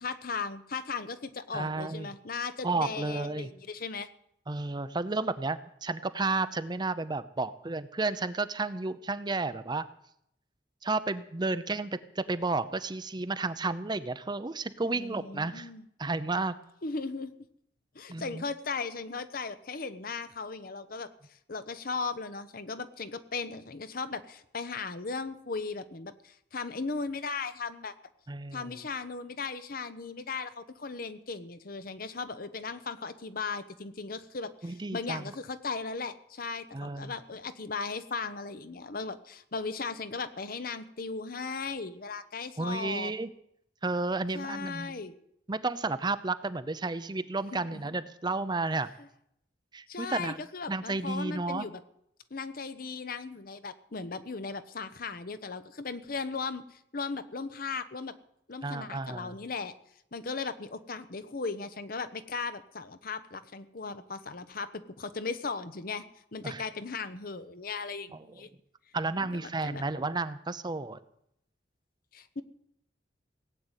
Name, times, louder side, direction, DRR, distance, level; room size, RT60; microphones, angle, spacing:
voice 1, 0.0-4.1 14.8-15.8 16.8-17.3 17.9-21.1 21.5-27.9 28.5-43.1 44.3-45.1 47.5-48.0 49.9-51.8 52.3-58.1 58.5-59.7 60.1-66.0 66.3-68.5 69.2-69.8 72.1-72.4, left 4 dB, 55° left, 12 dB, 1.0 m, -37 dB
voice 2, 1.5-2.1 2.6-3.5 4.5-9.8 10.8-15.7 16.0-16.5 18.1-18.4 28.3-28.7 34.6-35.2 36.7-37.1 42.6-43.3 43.8-44.9 45.5-48.9 49.7-50.4 50.7-51.7 58.6-59.4 66.4-66.6 68.1-68.2 68.9-71.0, right 3 dB, 25° right, 13 dB, 0.6 m, -32 dB
17.5 x 8.0 x 9.0 m, 0.75 s
head